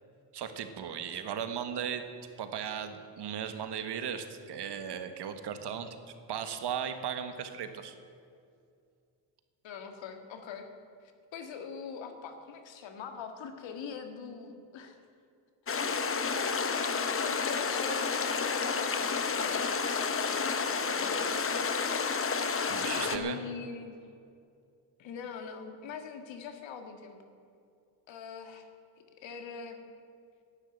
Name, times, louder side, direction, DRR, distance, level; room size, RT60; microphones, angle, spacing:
voice 1, 0.3-2.0 2.4-6.0 6.3-7.9 22.7-23.4, right 8 dB, 60° right, 8 dB, 1.5 m, -36 dB
voice 2, 9.6-10.7 11.0-15.0 15.6-19.8 20.1-21.5 23.1-24.0 25.0-27.2 28.1-28.7 29.2-29.8, left 6 dB, 75° left, 6 dB, 1.9 m, -43 dB
sound 1, 15.7-23.2, left 5 dB, 30° left, 1.1 m, -30 dB
11.5 x 10.5 x 9.1 m, 2.4 s
cardioid pair, 90°, 45 cm